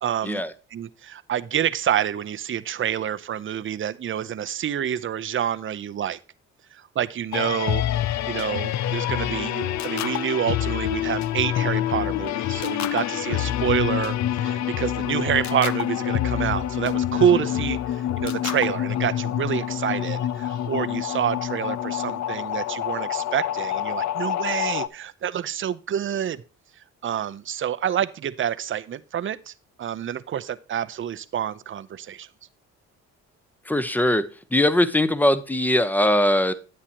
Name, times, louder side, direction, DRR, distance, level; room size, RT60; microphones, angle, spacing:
voice 1, 0.0-0.4 0.7-6.2 6.7-7.8 8.3-26.4 27.0-32.3, right 9 dB, 40° right, 0.7 m, -27 dB
sound 1, 7.3-24.9, left 11 dB, 65° left, 0.6 m, -26 dB
voice 2, 33.6-36.5, left 1 dB, 5° left, 0.9 m, -21 dB
10.0 x 8.3 x 2.9 m
cardioid pair, 90°, 30 cm